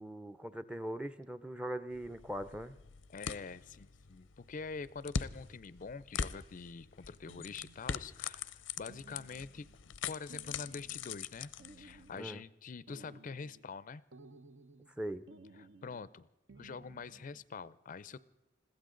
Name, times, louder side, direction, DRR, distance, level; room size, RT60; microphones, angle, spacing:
voice 1, 0.0-2.7 12.2-12.4 15.0-15.2, right 1 dB, 5° right, 12 dB, 0.5 m, -40 dB
sound 1, 1.9-12.2, left 6 dB, 85° left, 0.6 m, -43 dB
voice 2, 3.1-9.7 10.1-11.5 11.8-14.0 15.6-16.3 16.6-18.2, left 4 dB, 45° left, 18 dB, 0.5 m, -45 dB
sound 2, 7.3-8.1 8.9-9.8 10.3-11.3 11.6-12.4 12.9-13.7 14.1-15.0 15.3-16.1 16.5-17.5, right 2 dB, 70° right, 0.9 m, -57 dB
21.5 x 15.5 x 3.8 m, 1.0 s
head